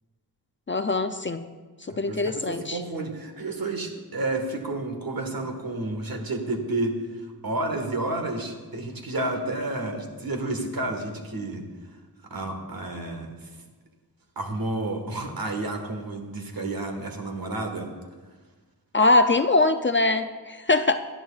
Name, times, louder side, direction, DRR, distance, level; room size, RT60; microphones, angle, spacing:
voice 1, 0.7-1.5 2.0-2.8 18.9-21.0, left 2 dB, 30° left, 8 dB, 0.4 m, -22 dB
voice 2, 1.9-11.7 12.3-13.3 14.4-17.9, right 2 dB, 65° right, 3 dB, 1.7 m, -31 dB
18.0 x 11.0 x 2.4 m, 1.4 s
wide cardioid pair, 85°, 38 cm